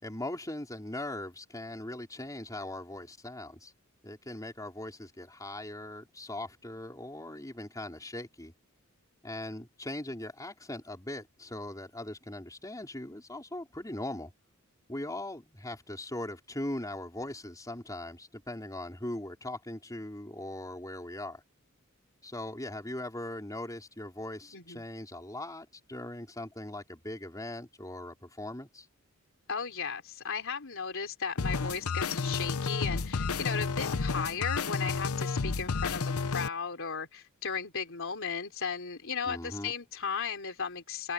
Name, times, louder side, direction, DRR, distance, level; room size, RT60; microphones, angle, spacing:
voice 1, 0.0-3.7 4.0-8.5 9.2-14.3 14.9-21.4 22.2-28.9 39.2-39.7, left 1 dB, 15° left, 4.4 m, -40 dB
voice 2, 24.5-24.8 29.5-41.1, left 6 dB, 65° left, 3.8 m, -35 dB
sound 1, 31.4-36.5, left 4 dB, 80° left, 0.8 m, -31 dB
head